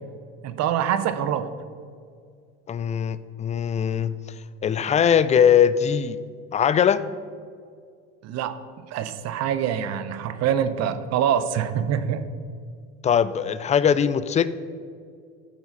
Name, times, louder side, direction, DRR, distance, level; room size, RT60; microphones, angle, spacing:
voice 1, 0.4-1.5 8.2-8.6 8.9-12.3, right 9 dB, 60° right, 12 dB, 0.7 m, -25 dB
voice 2, 2.7-4.2 4.6-6.2 6.5-7.0 13.0-14.5, left 8 dB, 25° left, 15 dB, 0.4 m, -20 dB
12.5 x 4.7 x 5.3 m, 2.2 s
supercardioid pair, 85°, 30 cm